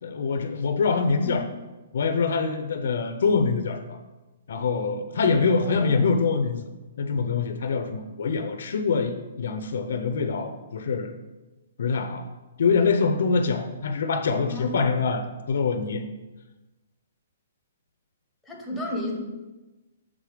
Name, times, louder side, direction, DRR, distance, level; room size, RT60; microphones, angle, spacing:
voice 1, 0.0-1.5 1.9-4.0 4.5-6.6 7.0-11.1 11.8-12.3 12.6-16.0, left 4 dB, 60° left, 7 dB, 0.5 m, -24 dB
voice 2, 1.0-1.4 5.6-6.1 14.5-14.8 18.5-19.1, equal, ahead, -3 dB, 0.9 m, -32 dB
6.5 x 3.6 x 4.9 m, 1.1 s
hypercardioid pair, 175°, 0 cm